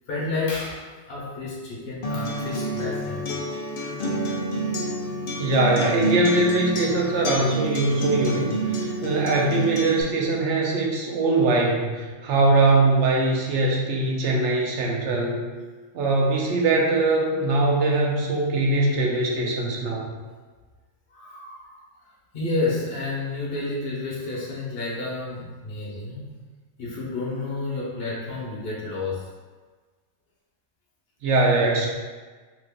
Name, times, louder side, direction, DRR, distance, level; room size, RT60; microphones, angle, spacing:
voice 1, 0.1-3.3 3.8-4.0 21.1-21.8 22.3-26.4 26.8-29.3, left 3 dB, 50° left, -5 dB, 1.0 m, -30 dB
Acoustic guitar, 2.0-10.0, right 1 dB, 70° left, 0.4 m, -29 dB
voice 2, 5.4-15.4 15.9-20.1 31.2-31.9, right 2 dB, 65° right, -1 dB, 0.9 m, -22 dB
3.0 x 2.4 x 3.5 m, 1.4 s
omnidirectional pair, 1.4 m